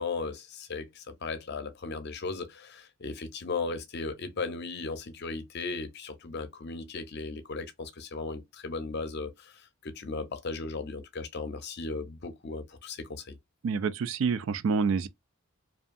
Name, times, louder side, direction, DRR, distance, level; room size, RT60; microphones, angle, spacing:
voice 1, 0.0-13.4, left 3 dB, 55° left, 0.6 m, -36 dB
voice 2, 13.6-15.1, right 5 dB, 65° right, 0.3 m, -27 dB
2.6 x 2.3 x 2.4 m
head